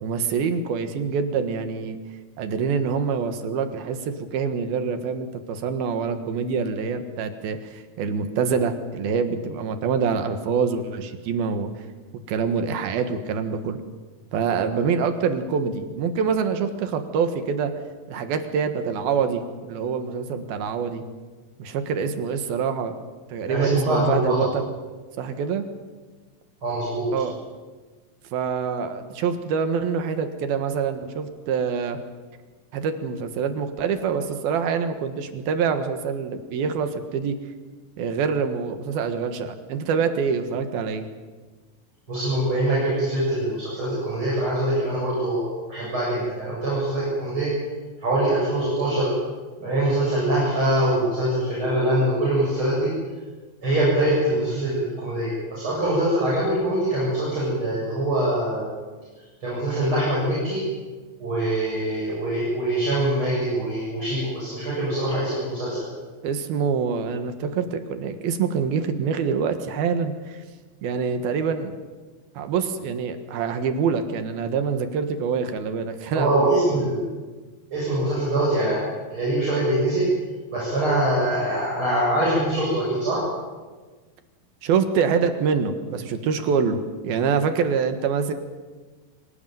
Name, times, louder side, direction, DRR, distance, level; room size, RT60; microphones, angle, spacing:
voice 1, 0.0-2.0 2.4-11.7 12.3-13.8 14.3-17.7 18.1-21.0 21.6-23.0 23.3-24.7 25.2-25.7 27.1-27.4 28.3-32.0 32.7-37.4 38.0-41.1 66.2-70.4 70.8-71.8 72.4-76.9 84.6-88.3, right 6 dB, 80° right, 8 dB, 3.4 m, -25 dB
voice 2, 23.5-24.5 26.6-27.1 42.1-45.4 45.7-47.5 48.0-49.1 49.6-52.9 53.6-58.8 59.4-60.6 61.2-65.9 76.1-77.0 77.7-80.1 80.5-83.2, right 1 dB, 35° right, -6 dB, 8.3 m, -23 dB
25.5 x 18.5 x 9.3 m, 1.3 s
omnidirectional pair, 4.2 m